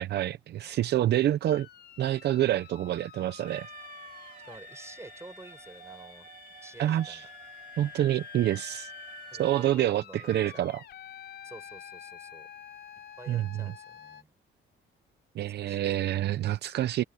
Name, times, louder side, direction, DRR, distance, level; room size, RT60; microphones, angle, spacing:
voice 1, 0.0-1.7 2.0-3.7 6.8-7.3 7.8-8.9 9.4-10.8 13.3-13.7 15.3-17.0, right 12 dB, 65° right, 0.7 m, -27 dB
sound 1, 1.5-14.2, left 10 dB, 60° left, 6.5 m, -48 dB
Alarm, 3.5-9.7, right 8 dB, 45° right, 3.0 m, -50 dB
voice 2, 4.4-6.3 6.6-7.3 9.3-10.7 11.4-12.5 13.2-14.3 15.4-15.9, right 2 dB, 15° right, 7.0 m, -49 dB
cardioid pair, 150°, 19 cm